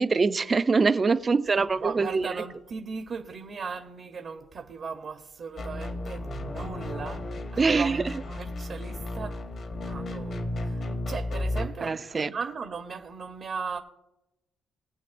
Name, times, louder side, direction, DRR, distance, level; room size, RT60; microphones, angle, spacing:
voice 1, 0.0-2.2 7.6-8.0 11.8-12.3, right 4 dB, 35° right, 0.5 m, -23 dB
voice 2, 1.5-7.3 7.5-9.5 9.7-13.8, right 5 dB, 50° right, 0.9 m, -37 dB
sound 1, 5.6-11.7, left 1 dB, 55° left, 1.3 m, -33 dB
21.5 x 8.3 x 2.6 m
cardioid pair, 90°, 0 cm